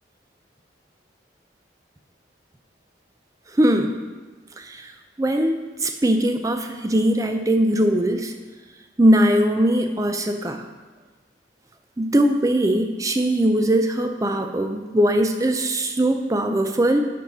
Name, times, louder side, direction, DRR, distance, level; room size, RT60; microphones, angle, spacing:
voice 1, 3.6-3.9 4.6-4.9 5.2-8.3 9.0-10.6 12.0-17.0, right 1 dB, 15° right, 5 dB, 0.4 m, -20 dB
7.1 x 4.6 x 5.4 m, 1.3 s
head